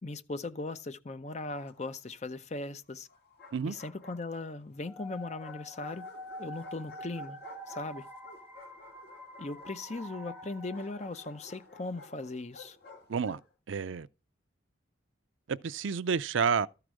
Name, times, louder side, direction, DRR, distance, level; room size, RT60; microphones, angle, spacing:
voice 1, 0.0-3.1 3.6-6.0 6.4-7.4 7.7-8.1 9.4-12.8, left 2 dB, 35° left, 0.6 m, -38 dB
Bark, 1.3-2.2 3.1-4.7 5.4-13.5, left 3 dB, 50° left, 2.4 m, -54 dB
sound 1, 4.8-11.6, left 1 dB, 5° right, 2.2 m, -46 dB
voice 2, 13.1-13.4 13.7-14.1 15.5-16.7, right 6 dB, 80° right, 0.5 m, -30 dB
13.0 x 4.9 x 6.3 m
head